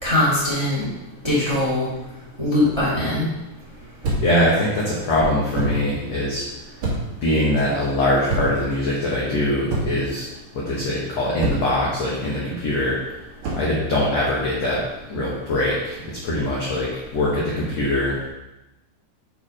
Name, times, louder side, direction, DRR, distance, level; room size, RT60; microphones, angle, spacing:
voice 1, 0.0-0.9 1.2-1.9 2.4-3.2, left 1 dB, 15° right, -9 dB, 1.0 m, -21 dB
sound 1, 4.0-4.4 5.5-5.9 6.8-7.2 8.3-8.7 9.7-10.1 11.4-11.8 13.4-13.7, right 2 dB, 50° right, 2.4 m, -25 dB
voice 2, 4.2-6.6 7.2-10.3 10.5-13.0 13.6-14.8 15.1-16.0 16.2-18.2, left 1 dB, 75° left, -5 dB, 1.5 m, -22 dB
7.0 x 4.3 x 4.9 m, 0.97 s
omnidirectional pair, 4.8 m